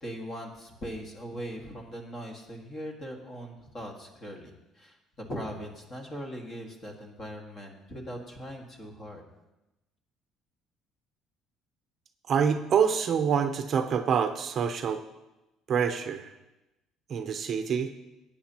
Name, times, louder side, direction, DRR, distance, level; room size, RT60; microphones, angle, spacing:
voice 1, 0.0-9.2, equal, 30° left, 1 dB, 1.7 m, -40 dB
voice 2, 12.3-15.0 15.7-16.3 17.1-17.9, right 7 dB, 40° right, 7 dB, 0.6 m, -26 dB
18.0 x 8.8 x 2.9 m, 1.0 s
cardioid pair, 150°, 0 cm